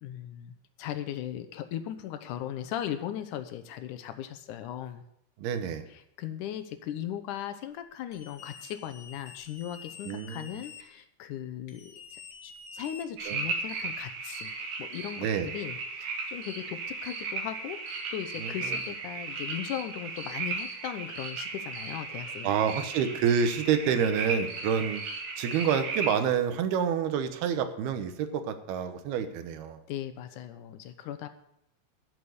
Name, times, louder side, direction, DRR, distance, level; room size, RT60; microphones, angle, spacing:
voice 1, 0.0-5.0 5.9-22.5 29.9-31.3, left 11 dB, 75° left, 10 dB, 2.0 m, -38 dB
voice 2, 5.4-5.9 10.0-10.5 13.3-13.4 15.2-15.5 18.4-18.8 22.4-25.0 25.4-29.8, right 7 dB, 85° right, 10 dB, 3.1 m, -28 dB
sound 1, 8.1-10.8 11.7-13.5, left 5 dB, 55° left, 1.1 m, -48 dB
sound 2, 13.2-26.1, right 4 dB, 65° right, 3.7 m, -36 dB
12.5 x 7.1 x 8.2 m, 0.76 s
omnidirectional pair, 4.4 m